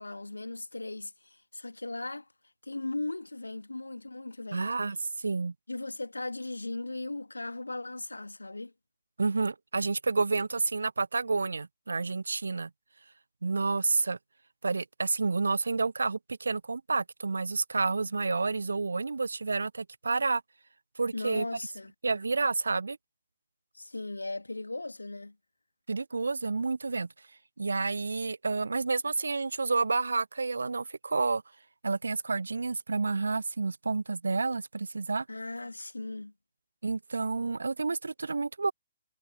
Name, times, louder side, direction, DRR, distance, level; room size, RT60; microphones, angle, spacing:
voice 1, 0.0-2.3 2.6-4.7 5.7-8.7 21.1-21.9 23.7-25.4 35.3-36.3, left 2 dB, 75° left, 2.3 m, -37 dB
voice 2, 4.5-5.5 9.2-12.7 13.4-14.2 14.6-20.4 21.0-21.5 22.0-23.0 25.9-27.1 27.6-31.4 31.8-35.3 36.8-38.7, right 4 dB, 65° right, 0.6 m, -29 dB
figure-of-eight pair, 130°, 0 cm